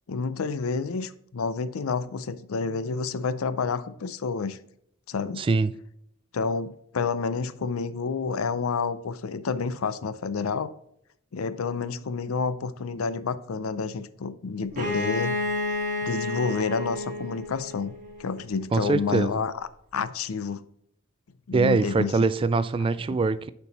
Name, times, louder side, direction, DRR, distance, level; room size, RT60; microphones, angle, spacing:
voice 1, 0.1-4.6 5.1-5.4 6.3-10.7 11.3-15.3 16.0-17.9 18.2-19.5 19.9-20.6 21.5-22.2, left 5 dB, 90° left, 0.5 m, -29 dB
voice 2, 5.4-5.7 18.7-19.3 21.5-23.5, right 3 dB, 25° right, 0.3 m, -23 dB
Bowed string instrument, 14.7-18.4, left 2 dB, 40° right, 1.7 m, -30 dB
6.7 x 4.6 x 4.1 m
head